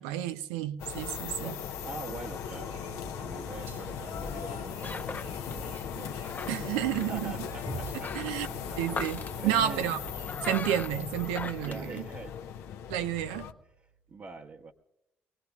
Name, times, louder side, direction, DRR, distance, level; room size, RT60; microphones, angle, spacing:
voice 1, 0.0-1.5 6.5-7.3 8.1-8.5 8.8-10.0 10.4-12.0 12.9-13.5, right 11 dB, 90° right, 0.5 m, -30 dB
sound 1, 0.8-13.5, left 7 dB, 75° left, 0.8 m, -38 dB
voice 2, 1.8-8.8 9.4-9.9 11.6-12.4 13.8-14.7, right 4 dB, 45° right, 1.1 m, -45 dB
sound 2, 2.3-11.1, right 2 dB, 70° right, 2.1 m, -47 dB
sound 3, 2.4-12.6, left 4 dB, 35° left, 0.6 m, -43 dB
24.0 x 18.5 x 2.3 m
hypercardioid pair, 55°, 5 cm